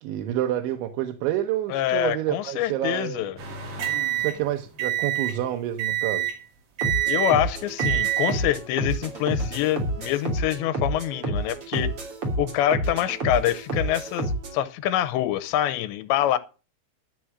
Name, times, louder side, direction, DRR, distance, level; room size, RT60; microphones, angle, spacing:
voice 1, 0.0-3.3 4.2-6.3, right 12 dB, 90° right, 3.3 m, -28 dB
voice 2, 1.7-3.4 7.1-11.9 12.4-16.4, left 12 dB, 85° left, 3.0 m, -25 dB
sound 1, 3.4-5.4 5.8-6.4 6.8-7.4 7.8-8.4 9.2-9.5, right 12 dB, 55° right, 4.1 m, -27 dB
sound 2, 6.8-14.6, right 1 dB, 35° right, 3.2 m, -29 dB
12.5 x 6.3 x 7.4 m
omnidirectional pair, 5.2 m